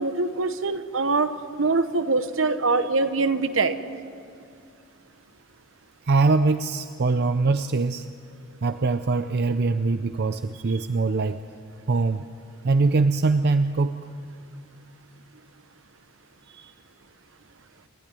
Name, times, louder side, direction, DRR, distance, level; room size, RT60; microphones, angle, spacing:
voice 1, 0.0-3.8, right 3 dB, 75° right, 10 dB, 1.1 m, -24 dB
voice 2, 6.1-8.1 8.6-11.4 11.9-12.2 12.6-14.1 16.5-16.7, right 3 dB, 55° right, 10 dB, 0.6 m, -23 dB
29.0 x 12.0 x 9.8 m, 2.4 s
head